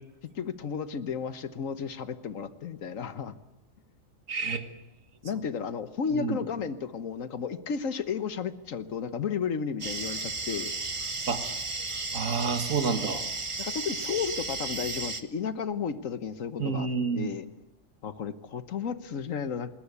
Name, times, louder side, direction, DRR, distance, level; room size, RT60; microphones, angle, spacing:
voice 1, 0.3-3.3 5.2-10.7 13.6-16.9 17.1-17.4 18.0-19.7, left 6 dB, 85° left, 12 dB, 1.5 m, -33 dB
voice 2, 4.3-4.6 6.1-6.4 11.3-11.4 12.1-13.2 16.6-17.3, right 5 dB, 90° right, 9 dB, 2.0 m, -29 dB
sound 1, 9.8-15.2, right 3 dB, 25° right, 1.1 m, -34 dB
20.5 x 20.0 x 8.3 m, 0.90 s
omnidirectional pair, 1.3 m